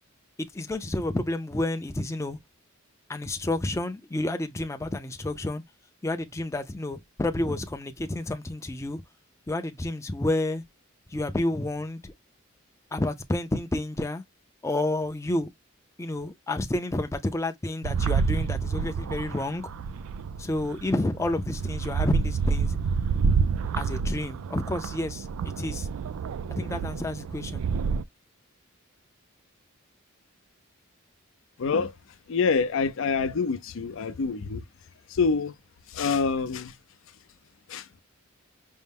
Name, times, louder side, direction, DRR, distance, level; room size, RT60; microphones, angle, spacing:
voice 1, 0.4-2.4 3.1-5.6 6.0-9.0 9.5-10.6 11.1-12.1 12.9-14.2 14.6-15.5 16.0-19.7 20.4-22.8 23.8-25.3 25.6-25.9 26.5-27.6, left 1 dB, 15° left, 0.4 m, -30 dB
sound 1, 17.8-28.0, right 5 dB, 80° right, 0.3 m, -28 dB
voice 2, 31.6-31.9 32.3-34.6 35.1-35.5 35.9-36.7 37.7-37.9, left 5 dB, 65° left, 0.5 m, -26 dB
5.3 x 2.0 x 3.4 m
head